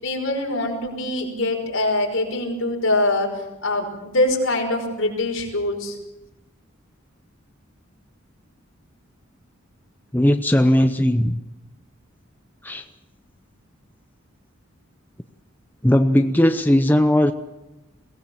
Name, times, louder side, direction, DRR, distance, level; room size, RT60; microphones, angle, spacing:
voice 1, 0.0-3.3 3.6-6.0, left 2 dB, 70° left, 5.5 m, -23 dB
voice 2, 10.1-11.4 12.6-12.8 15.8-17.3, left 1 dB, 10° left, 0.8 m, -18 dB
22.5 x 18.5 x 7.3 m
head